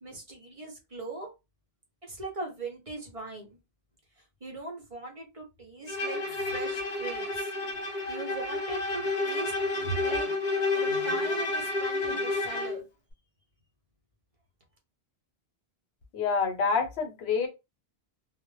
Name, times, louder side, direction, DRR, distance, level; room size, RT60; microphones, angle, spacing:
voice 1, 0.0-1.3 2.0-3.5 4.4-6.2 6.5-7.5 8.1-10.3 10.7-12.8, right 3 dB, 40° right, 0.7 m, -40 dB
Bowed string instrument, 5.9-12.8, left 2 dB, 50° left, 0.7 m, -30 dB
voice 2, 16.1-17.5, left 5 dB, 85° left, 0.9 m, -27 dB
2.0 x 2.0 x 3.0 m
omnidirectional pair, 1.0 m